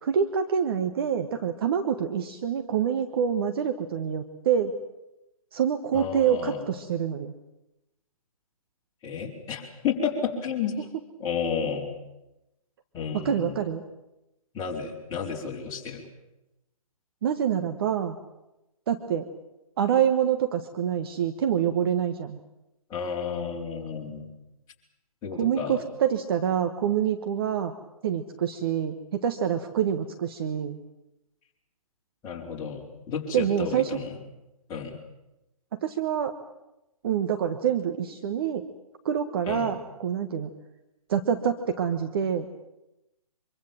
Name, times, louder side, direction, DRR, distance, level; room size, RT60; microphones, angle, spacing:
voice 1, 0.0-4.7 5.5-7.3 13.1-13.8 17.2-18.2 18.9-19.3 19.8-22.4 25.4-27.7 28.0-30.8 33.3-34.0 35.7-36.3 37.0-38.6 39.0-40.5 41.1-42.5, right 8 dB, 40° right, 7 dB, 1.4 m, -26 dB
voice 2, 5.9-6.6 9.0-10.8 11.2-11.9 12.9-13.6 14.5-16.1 22.9-24.3 25.2-25.8 32.2-34.1 34.7-35.0 39.5-39.7, left 6 dB, 20° left, -2 dB, 4.5 m, -32 dB
25.0 x 23.5 x 7.5 m, 0.93 s
figure-of-eight pair, 135°, 19 cm